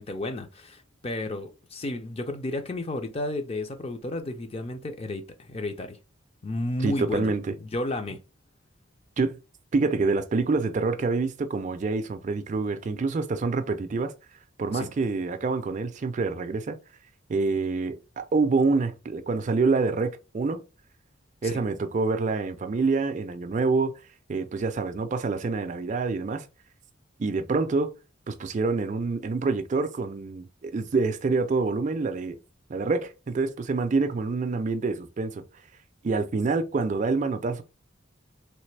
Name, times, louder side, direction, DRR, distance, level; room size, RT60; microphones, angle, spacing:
voice 1, 0.0-6.0 6.4-7.3 7.6-8.2 14.7-14.9 21.4-21.6, left 2 dB, 30° left, 0.5 m, -32 dB
voice 2, 6.8-7.5 9.2-9.4 9.7-14.1 14.6-16.8 17.3-20.6 21.4-23.9 24.3-26.5 27.2-27.9 28.3-32.4 32.7-35.4 36.0-37.6, right 3 dB, 35° right, 0.4 m, -26 dB
3.2 x 2.9 x 3.2 m
head